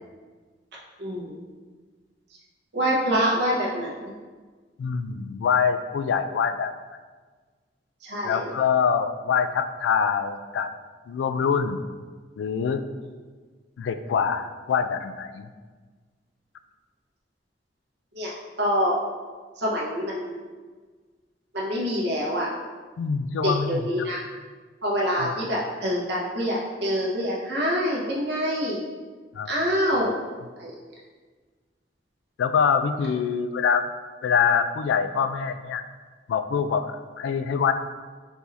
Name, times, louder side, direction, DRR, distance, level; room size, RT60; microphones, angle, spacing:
voice 1, 1.0-1.4 2.7-4.1 8.0-8.5 18.1-18.3 18.6-19.0 19.6-20.4 21.5-22.5 23.4-24.2 24.8-28.8 29.5-30.1 30.6-30.7, equal, 65° right, -4 dB, 1.2 m, -26 dB
voice 2, 4.8-6.7 8.2-10.7 11.1-11.8 12.4-12.8 13.8-15.5 23.0-24.1 25.2-25.3 29.3-29.6 32.4-33.9 34.2-35.8 36.3-37.7, left 6 dB, 75° left, 10 dB, 0.3 m, -24 dB
4.8 x 2.6 x 4.0 m, 1.4 s
head